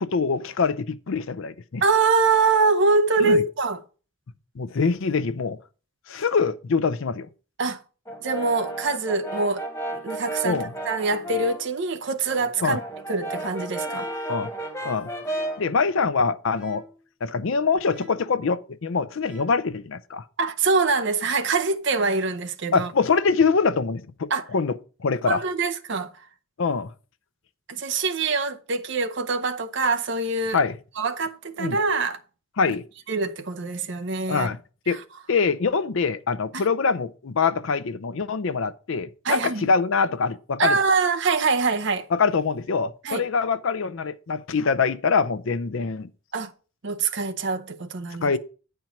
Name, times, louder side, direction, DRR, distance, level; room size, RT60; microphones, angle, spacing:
voice 1, 0.0-1.8 3.2-3.4 4.6-5.6 6.1-7.3 10.4-10.7 12.6-12.8 14.3-14.5 14.8-15.1 15.6-16.8 17.2-20.2 22.7-25.4 26.6-26.9 30.5-30.8 31.6-31.8 32.6-32.9 34.3-34.6 34.9-35.0 35.3-40.8 42.1-46.1 48.2-48.4, left 5 dB, 65° left, 0.5 m, -24 dB
voice 2, 1.8-3.8 7.6-7.8 8.2-12.8 13.1-14.1 20.4-22.9 24.3-24.4 25.3-26.1 27.7-30.6 31.0-32.2 33.1-34.5 39.2-39.7 40.6-42.1 43.0-43.3 46.3-46.5 46.8-48.3, right 4 dB, 55° right, 0.7 m, -24 dB
Brass instrument, 8.1-11.7 12.1-15.7, right 1 dB, 15° left, 1.4 m, -33 dB
sound 1, 13.9-14.4 15.2-15.7 16.5-17.1 17.9-18.4 19.2-19.7, left 2 dB, 5° right, 1.0 m, -47 dB
9.3 x 4.5 x 5.7 m
head